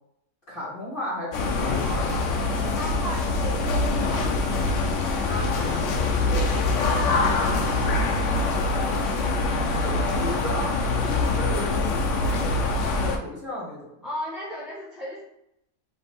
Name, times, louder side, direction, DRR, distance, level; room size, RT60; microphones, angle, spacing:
voice 1, 0.5-1.9 9.6-10.7 11.0-13.9, left 1 dB, 35° left, -8 dB, 1.9 m, -34 dB
sound 1, 1.3-13.2, left 3 dB, 65° left, 0.9 m, -24 dB
voice 2, 1.8-8.3 14.0-15.2, equal, ahead, -7 dB, 0.6 m, -38 dB
5.2 x 2.5 x 3.4 m, 0.78 s
omnidirectional pair, 1.5 m